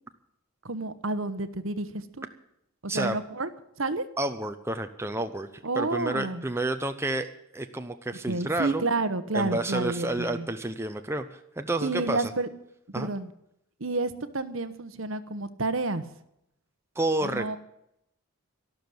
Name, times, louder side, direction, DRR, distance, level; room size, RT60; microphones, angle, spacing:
voice 1, 0.6-2.3 2.8-3.5 3.8-4.0 5.6-6.5 8.3-10.5 11.8-12.5 12.9-13.3 13.8-16.1 17.2-17.6, right 2 dB, 60° right, 12 dB, 1.1 m, -30 dB
voice 2, 4.2-5.5 5.8-7.3 7.5-8.8 9.3-12.2 12.9-13.1 17.0-17.6, right 2 dB, 10° right, 6 dB, 0.8 m, -30 dB
12.5 x 12.5 x 7.9 m, 0.78 s
head